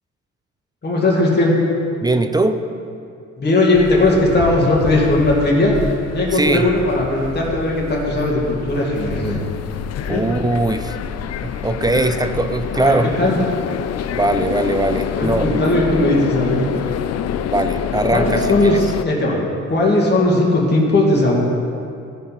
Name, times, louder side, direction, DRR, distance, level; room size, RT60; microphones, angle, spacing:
voice 1, 0.8-1.6 3.4-5.7 6.1-9.4 10.0-10.2 12.7-13.4 15.1-16.9 18.1-19.4 19.7-21.4, left 2 dB, 35° left, -4 dB, 2.2 m, -18 dB
voice 2, 2.0-2.6 6.3-6.7 10.1-11.0 11.4-13.1 14.1-15.7 17.5-18.8, right 2 dB, 15° right, 9 dB, 0.5 m, -20 dB
sound 1, 3.7-19.0, left 8 dB, 55° left, 0.5 m, -26 dB
14.0 x 5.3 x 4.2 m, 2.4 s
cardioid pair, 90°, 30 cm